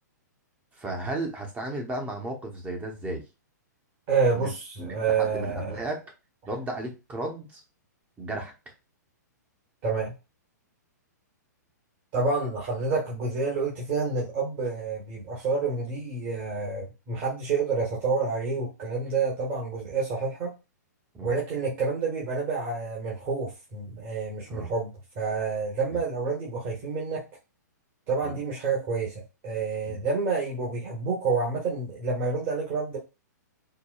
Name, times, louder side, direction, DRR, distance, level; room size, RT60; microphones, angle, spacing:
voice 1, 0.8-3.3 4.3-4.5 4.8-6.1 6.5-7.6 8.2-8.7 21.1-21.3 24.5-24.7 25.9-26.0 28.2-28.4 29.9-30.0, right 2 dB, 15° right, 2 dB, 0.8 m, -34 dB
voice 2, 4.1-5.9 9.8-10.1 12.1-20.5 21.2-27.2 28.1-33.0, right 4 dB, 40° right, -4 dB, 1.4 m, -28 dB
4.6 x 2.2 x 2.3 m, 0.27 s
hypercardioid pair, 125°, 10 cm